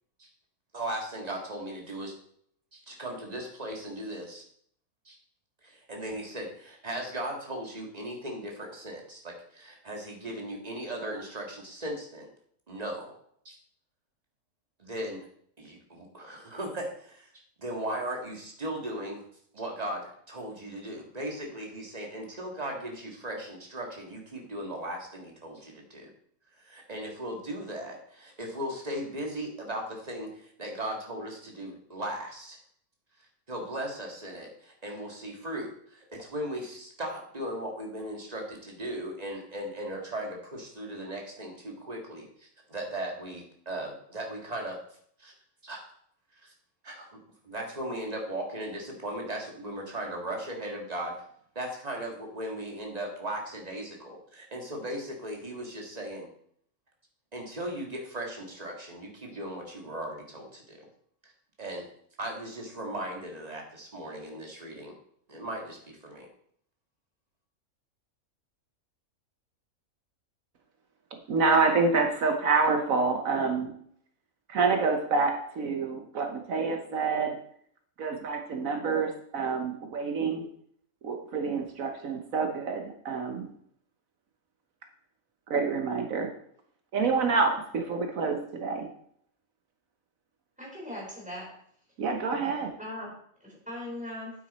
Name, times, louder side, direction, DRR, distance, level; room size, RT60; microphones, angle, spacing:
voice 1, 0.7-2.1 2.7-4.4 5.1-5.2 5.6-12.3 12.7-13.2 13.5-13.6 14.8-15.3 15.6-17.3 17.6-19.2 19.5-26.1 26.6-32.6 33.5-44.8 45.2-45.3 45.6-45.9 46.4-46.5 46.8-47.2 47.4-51.1 51.6-56.3 57.3-60.8 61.2-61.3 61.6-61.8 62.2-64.9 65.3-66.3, right 1 dB, 30° right, 0 dB, 2.0 m, -37 dB
voice 2, 71.3-73.7 74.5-77.4 78.0-80.5 81.0-83.5 85.5-86.3 86.9-88.9 92.0-92.7, right 4 dB, 70° right, 5 dB, 1.4 m, -27 dB
voice 3, 90.6-91.5 92.8-93.1 93.4-94.3, left 1 dB, 5° right, -4 dB, 4.3 m, -39 dB
9.0 x 8.3 x 4.2 m, 0.65 s
omnidirectional pair, 1.5 m